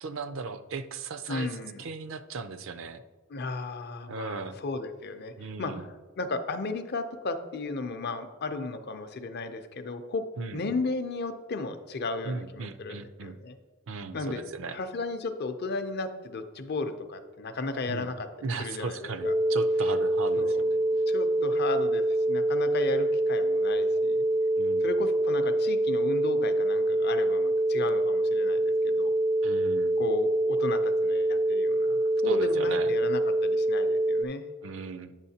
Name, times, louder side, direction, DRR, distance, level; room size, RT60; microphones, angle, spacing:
voice 1, 0.0-3.0 4.1-4.6 5.4-5.9 10.4-10.6 12.2-13.4 13.9-14.8 17.9-18.1 18.4-20.8 24.6-24.9 29.4-30.0 32.3-32.9 34.6-35.2, right 4 dB, 65° right, 11 dB, 0.5 m, -37 dB
voice 2, 1.3-1.9 3.3-5.9 6.2-10.2 10.5-13.6 14.1-14.4 14.7-19.3 20.4-20.6 21.1-24.3 24.8-29.1 30.0-34.4, left 3 dB, 50° left, 8 dB, 0.5 m, -35 dB
sound 1, 19.2-34.2, right 1 dB, 5° left, 0.4 m, -25 dB
8.9 x 6.4 x 2.8 m, 1.2 s
head